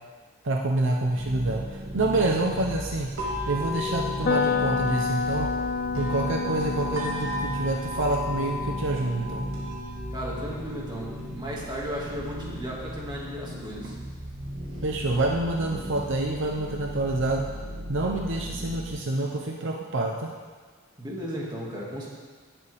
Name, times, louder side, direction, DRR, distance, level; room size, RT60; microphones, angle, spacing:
voice 1, 0.4-3.1 3.5-5.5 6.0-9.4 14.8-17.5 17.9-20.3, right 2 dB, 60° right, 0 dB, 0.8 m, -27 dB
sound 1, 1.0-18.9, equal, 45° right, 1.8 m, -37 dB
sound 2, 3.1-17.1, left 2 dB, 75° right, 2.2 m, -38 dB
sound 3, 4.2-12.2, left 5 dB, 45° left, 0.4 m, -31 dB
voice 2, 10.1-13.9 21.0-22.1, equal, 20° right, -4 dB, 2.2 m, -35 dB
17.0 x 7.2 x 3.5 m, 1.5 s
head